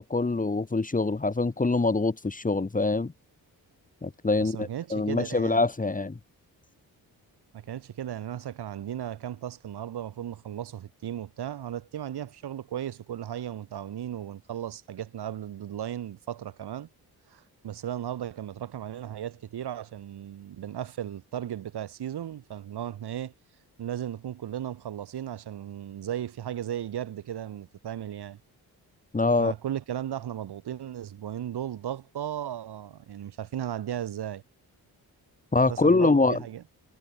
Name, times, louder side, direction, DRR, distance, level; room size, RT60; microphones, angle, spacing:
voice 1, 0.0-3.1 4.0-6.2 29.1-29.5 35.5-36.4, left 3 dB, 20° left, 2.1 m, -24 dB
voice 2, 4.4-5.7 7.5-16.9 17.3-23.3 23.8-28.4 29.4-34.4 35.7-36.6, right 10 dB, 85° right, 7.5 m, -36 dB
cardioid pair, 105°, 38 cm